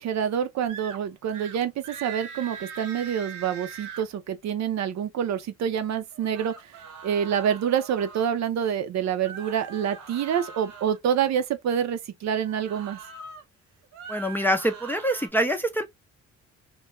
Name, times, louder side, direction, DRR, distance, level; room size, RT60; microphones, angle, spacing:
voice 1, 0.0-6.7 7.0-13.0, right 8 dB, 65° right, 0.6 m, -27 dB
sound 1, 0.7-1.0 1.3-1.6 1.8-4.0 6.1-8.3 9.2-11.0 12.4-13.4 13.8-15.3, right 6 dB, 85° right, 0.9 m, -42 dB
voice 2, 14.1-15.8, equal, 5° left, 0.5 m, -25 dB
2.2 x 2.2 x 2.9 m
cardioid pair, 90°, 30 cm